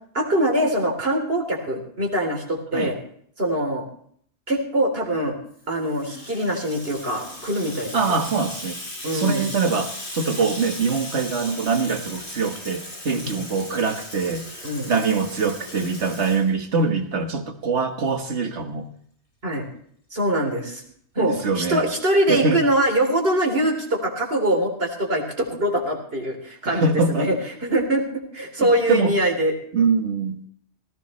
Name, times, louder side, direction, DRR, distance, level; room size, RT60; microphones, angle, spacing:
voice 1, 0.1-3.0 3.4-3.8 4.5-5.4 5.7-8.2 9.0-9.5 13.1-13.4 14.6-14.9 19.4-19.7 20.1-20.8 21.2-27.4 27.6-28.0 28.3-29.5, right 1 dB, 60° right, 1 dB, 3.8 m, -23 dB
Water tap faucet / Sink (filling or washing), 5.6-17.0, left 1 dB, 75° left, 5.5 m, -37 dB
voice 2, 7.9-8.8 9.1-18.9 21.2-21.8 22.3-22.6 26.7-27.3 28.6-29.1 29.7-30.5, right 4 dB, 75° right, 6 dB, 1.8 m, -23 dB
18.5 x 15.5 x 3.2 m, 0.62 s
omnidirectional pair, 1.2 m